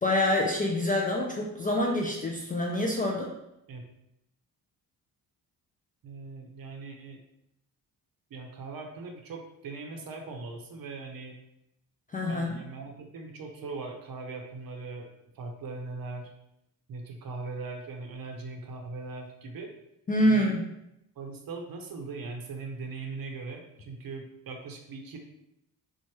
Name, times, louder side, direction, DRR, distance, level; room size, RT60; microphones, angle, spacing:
voice 1, 0.0-3.3 12.1-12.6 20.1-20.7, left 1 dB, 20° left, -1 dB, 0.4 m, -26 dB
voice 2, 6.0-7.2 8.3-11.4 12.3-15.1 15.3-16.3 16.9-19.7 20.2-20.5 21.2-25.2, right 3 dB, 45° right, 2 dB, 0.7 m, -40 dB
3.1 x 2.1 x 3.0 m, 0.81 s
hypercardioid pair, 40°, 49 cm